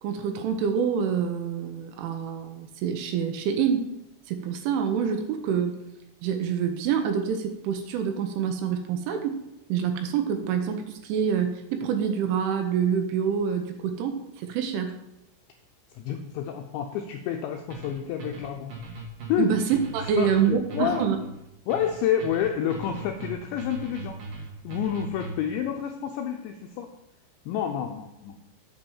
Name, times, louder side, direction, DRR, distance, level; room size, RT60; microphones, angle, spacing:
voice 1, 0.0-3.9 4.3-5.8 6.2-9.4 9.7-15.0 19.4-21.2, right 7 dB, 80° right, 6 dB, 3.1 m, -26 dB
voice 2, 16.0-18.7 19.3-19.5 20.2-21.0 21.7-24.2 24.6-26.9 27.5-28.4, left 9 dB, 85° left, 3 dB, 2.5 m, -29 dB
sound 1, 17.7-25.6, right 2 dB, 60° right, 1.7 m, -39 dB
8.9 x 5.2 x 7.2 m, 0.88 s
omnidirectional pair, 5.9 m